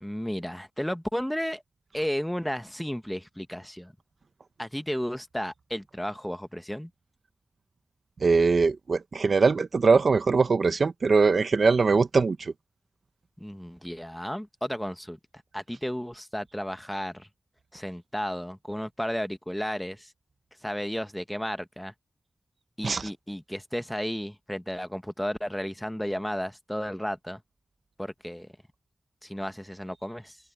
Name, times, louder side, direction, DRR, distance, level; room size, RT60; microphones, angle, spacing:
voice 1, 0.0-1.6 1.9-3.9 4.6-6.9 13.4-15.2 15.5-17.3 17.7-20.1 20.6-21.9 22.8-27.4 28.0-28.5 29.2-30.4, equal, 5° left, 1.3 m, -33 dB
voice 2, 8.2-12.5 22.8-23.1, right 4 dB, 80° right, 1.1 m, -22 dB
open air
wide cardioid pair, 70°, 0 cm